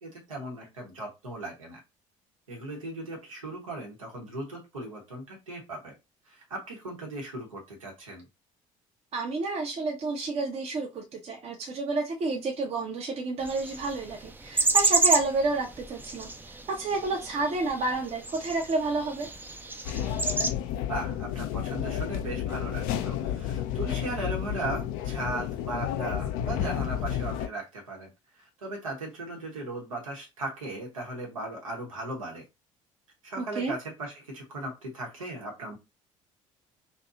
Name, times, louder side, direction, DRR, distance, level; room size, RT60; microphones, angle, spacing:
voice 1, 0.0-1.8 2.5-5.9 6.3-8.3 20.9-32.4 33.2-35.8, right 2 dB, 80° right, 1.0 m, -37 dB
voice 2, 9.1-16.3 16.7-19.3 33.4-33.7, right 3 dB, 35° right, 0.8 m, -30 dB
sound 1, 13.4-20.5, right 3 dB, 10° right, 0.4 m, -30 dB
sound 2, 19.8-27.5, left 10 dB, 55° left, 0.4 m, -31 dB
2.7 x 2.3 x 3.7 m
figure-of-eight pair, 55°, 17 cm